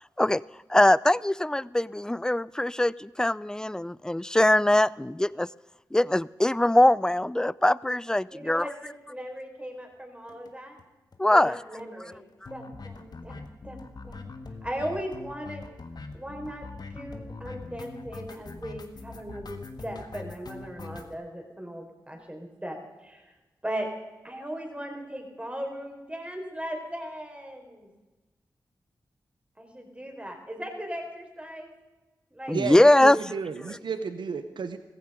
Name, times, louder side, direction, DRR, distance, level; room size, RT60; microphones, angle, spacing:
voice 1, 0.7-5.5 5.9-8.7 11.2-11.6 32.5-33.2, left 1 dB, 10° left, 21 dB, 0.4 m, -22 dB
voice 2, 8.3-10.8 11.3-12.2 12.5-14.2 14.6-15.6 16.1-23.2 23.6-23.9 24.2-27.9 29.6-31.7 32.3-32.6, equal, 15° right, 3 dB, 4.7 m, -38 dB
sound 1, 10.3-10.5 10.8-10.9 11.1-11.2 11.4-11.5 11.8-21.1, left 3 dB, 60° left, 1.7 m, -42 dB
voice 3, 32.5-34.8, right 5 dB, 85° right, 10 dB, 0.9 m, -32 dB
15.5 x 15.5 x 5.2 m, 1.1 s
cardioid pair, 50°, 8 cm